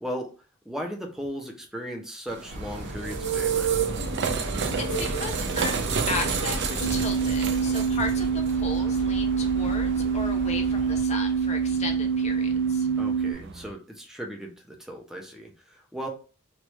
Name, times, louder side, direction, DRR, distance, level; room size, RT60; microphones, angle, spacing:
voice 1, 0.7-3.7 13.0-16.1, equal, ahead, 1 dB, 0.7 m, -36 dB
sound 1, 2.3-13.7, right 6 dB, 55° right, 0.5 m, -31 dB
sound 2, 2.5-11.0, equal, 35° right, 1.2 m, -37 dB
voice 2, 4.3-12.9, left 3 dB, 30° left, 1 dB, 0.8 m, -35 dB
sound 3, 6.8-13.3, right 6 dB, 85° left, 0.5 m, -25 dB
3.2 x 2.4 x 3.0 m, 0.35 s
head